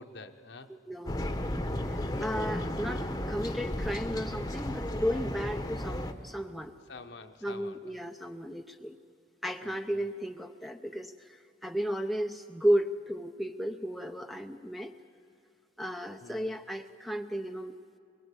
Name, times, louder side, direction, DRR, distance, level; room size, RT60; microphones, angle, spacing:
voice 1, 0.0-0.7 6.9-8.0 9.6-9.7 16.2-16.5, left 3 dB, 60° left, 7 dB, 1.0 m, -47 dB
voice 2, 0.7-6.8 7.4-9.0 9.4-14.9 15.8-17.8, equal, ahead, 4 dB, 0.6 m, -34 dB
sound 1, 1.1-6.1, left 1 dB, 20° left, 1.0 m, -34 dB
22.5 x 22.5 x 8.3 m, 2.4 s
head